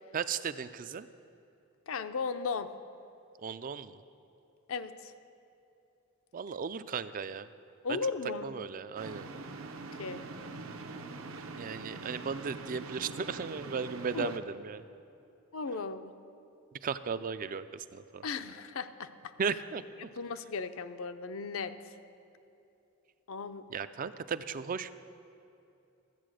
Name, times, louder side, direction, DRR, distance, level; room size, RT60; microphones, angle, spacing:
voice 1, 0.1-1.1 3.4-4.0 6.3-7.5 7.9-8.0 8.4-9.2 11.6-14.8 16.8-18.3 19.4-19.8 23.7-24.9, right 6 dB, 40° right, 13 dB, 0.4 m, -36 dB
voice 2, 1.9-2.7 4.7-5.1 7.8-8.5 10.0-10.2 14.1-14.3 15.5-16.1 18.2-19.1 20.2-22.0 23.3-23.7, left 4 dB, 65° left, 10 dB, 0.6 m, -36 dB
sound 1, 9.0-14.4, right 3 dB, 65° right, 0.7 m, -43 dB
14.0 x 8.3 x 6.3 m, 2.8 s
head